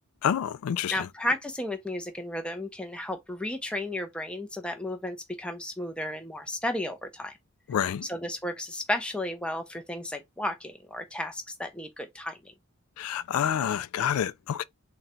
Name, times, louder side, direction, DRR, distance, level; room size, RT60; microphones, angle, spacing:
voice 1, 0.2-1.0 7.7-8.1 13.0-14.6, left 9 dB, 85° left, 0.3 m, -28 dB
voice 2, 0.9-7.3 8.0-12.4, left 1 dB, 5° left, 0.5 m, -33 dB
3.9 x 2.2 x 4.1 m
head